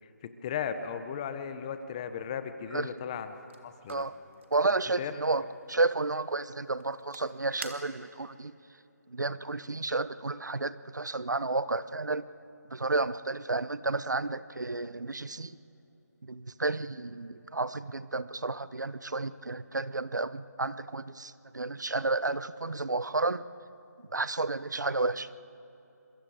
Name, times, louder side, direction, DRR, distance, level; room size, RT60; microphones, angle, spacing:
voice 1, 0.2-3.4 3.6-4.1 5.0-5.1, left 7 dB, 20° left, 10 dB, 1.0 m, -36 dB
sound 1, 3.1-8.4, right 5 dB, 40° right, 1.8 m, -50 dB
voice 2, 4.5-8.5 9.1-12.2 12.7-15.6 16.2-23.4 24.1-25.3, right 3 dB, 90° right, 16 dB, 0.9 m, -31 dB
26.5 x 22.5 x 5.0 m, 2.9 s
figure-of-eight pair, 160°, 9 cm